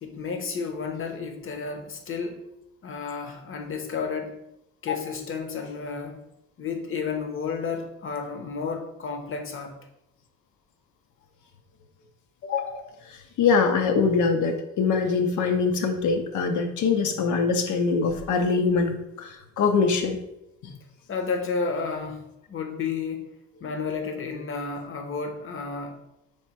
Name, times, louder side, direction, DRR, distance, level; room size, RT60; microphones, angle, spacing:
voice 1, 0.0-2.4 2.8-4.4 4.8-6.2 6.6-9.8 21.1-22.2 22.5-23.3 23.6-26.0, left 5 dB, 45° left, 5 dB, 0.8 m, -31 dB
voice 2, 12.4-20.2 20.6-20.7, left 5 dB, 75° left, 5 dB, 0.7 m, -24 dB
3.2 x 3.0 x 4.5 m, 0.86 s
cardioid pair, 90°, 30 cm